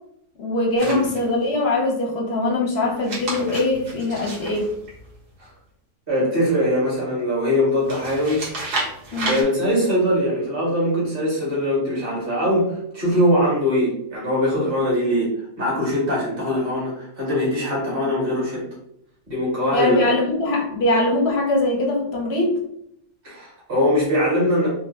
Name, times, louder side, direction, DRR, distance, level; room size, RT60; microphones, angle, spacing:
voice 1, 0.4-4.7 9.1-9.3 17.9-18.0 19.7-22.6, left 2 dB, 50° left, -1 dB, 0.8 m, -22 dB
sound 1, 0.8-1.5 2.9-5.5 7.8-9.4, right 2 dB, 70° right, 1.6 m, -31 dB
voice 2, 6.1-8.5 9.2-18.6 19.3-20.2 23.2-24.7, equal, 35° right, -6 dB, 1.7 m, -22 dB
3.7 x 2.6 x 2.6 m, 0.74 s
omnidirectional pair, 1.8 m